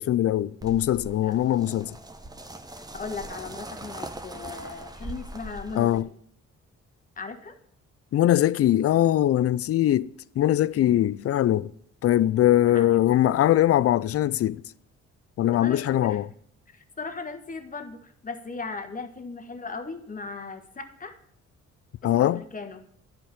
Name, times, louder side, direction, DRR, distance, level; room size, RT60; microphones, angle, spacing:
voice 1, 0.0-2.0 5.8-6.1 8.1-11.7 12.0-14.6 15.4-16.3 22.0-22.4, left 12 dB, 50° left, 0.4 m, -22 dB
sound 1, 0.6-6.0, right 1 dB, 15° right, 0.9 m, -41 dB
voice 2, 2.9-6.0 7.2-7.6 10.8-11.2 12.7-13.0 15.5-16.2 16.7-21.2 22.0-22.8, left 4 dB, 25° left, 1.3 m, -38 dB
10.5 x 5.1 x 7.4 m
cardioid pair, 90°, 30 cm